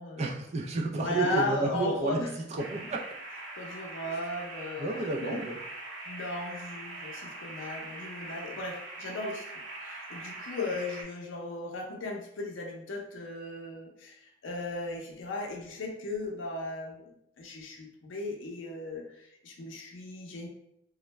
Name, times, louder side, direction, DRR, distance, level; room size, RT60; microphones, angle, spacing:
voice 1, 0.2-2.2 2.5-3.1 4.8-5.6, right 3 dB, 35° right, 0 dB, 0.4 m, -31 dB
voice 2, 1.0-2.3 3.6-5.4 6.1-9.4 9.8-20.5, left 2 dB, 75° left, 0 dB, 0.5 m, -36 dB
sound 1, 2.6-11.0, right 2 dB, 70° right, 1.0 m, -42 dB
2.3 x 2.1 x 3.0 m, 0.78 s
head